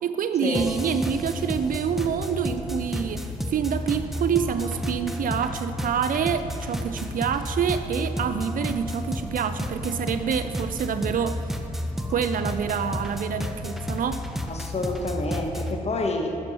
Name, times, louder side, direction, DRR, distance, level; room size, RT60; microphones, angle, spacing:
voice 1, 0.0-11.5 12.1-14.3, right 7 dB, 50° right, 10 dB, 0.5 m, -27 dB
sound 1, 0.5-15.8, left 1 dB, ahead, 0.9 m, -32 dB
voice 2, 14.5-16.4, left 2 dB, 35° left, 3 dB, 1.3 m, -28 dB
11.0 x 6.9 x 4.3 m, 2.8 s
hypercardioid pair, 40°, 18 cm